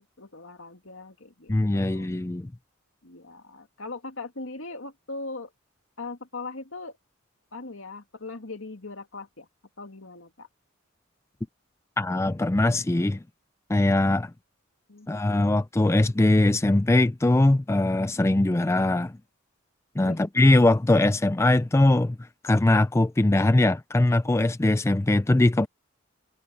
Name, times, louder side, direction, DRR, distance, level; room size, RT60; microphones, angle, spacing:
voice 1, 0.0-2.1 3.0-5.5 6.0-7.0 7.5-9.5 9.8-10.5 14.9-15.1 20.0-20.2, left 3 dB, 75° left, 2.4 m, -40 dB
voice 2, 1.5-2.5 12.0-13.2 13.7-14.3 15.1-19.2 20.0-22.2 22.4-25.7, left 2 dB, 15° left, 0.3 m, -21 dB
head